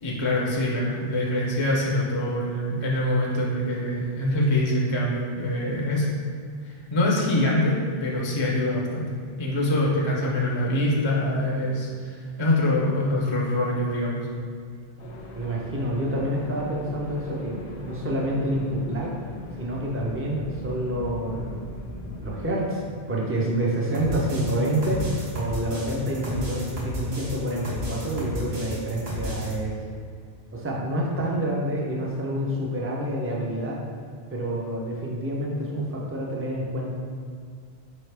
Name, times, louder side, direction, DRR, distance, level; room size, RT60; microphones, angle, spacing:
voice 1, 0.0-6.1 6.6-9.1 9.4-14.3, left 1 dB, 35° left, -3 dB, 0.5 m, -24 dB
sound 1, 15.0-22.4, left 2 dB, 85° left, 0.9 m, -39 dB
voice 2, 15.3-17.6 17.8-19.1 19.6-21.6 22.2-22.8 23.1-29.7 30.5-33.8 34.3-36.9, right 1 dB, 20° right, -3 dB, 0.4 m, -28 dB
sound 2, 23.9-29.5, left 1 dB, 70° right, 1.1 m, -33 dB
4.7 x 3.1 x 3.3 m, 2.1 s
omnidirectional pair, 1.1 m